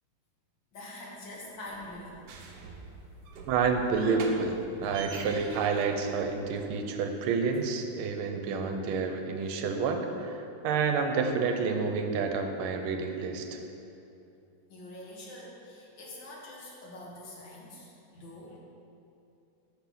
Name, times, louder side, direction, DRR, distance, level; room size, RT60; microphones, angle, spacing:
voice 1, 0.7-3.5 14.7-18.6, left 1 dB, 70° left, -3 dB, 2.0 m, -46 dB
sound 1, 1.7-6.7, right 4 dB, 65° right, 1.1 m, -46 dB
voice 2, 3.5-13.6, right 5 dB, 80° right, 5 dB, 1.5 m, -29 dB
6.2 x 6.0 x 5.7 m, 2.7 s
omnidirectional pair, 2.3 m